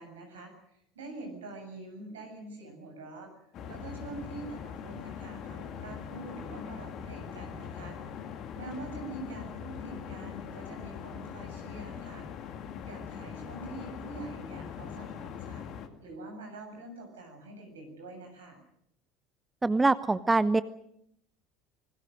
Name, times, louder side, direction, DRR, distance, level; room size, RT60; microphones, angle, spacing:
voice 1, 0.0-3.3 3.7-8.0 8.5-12.3 12.8-15.7 16.0-18.6, right 2 dB, 75° right, 4 dB, 7.7 m, -45 dB
sound 1, 3.5-15.9, left 7 dB, 45° left, 2.3 m, -41 dB
voice 2, 19.6-20.6, right 3 dB, 15° right, 15 dB, 0.8 m, -24 dB
25.5 x 21.5 x 6.6 m, 0.74 s
figure-of-eight pair, 65°, 0 cm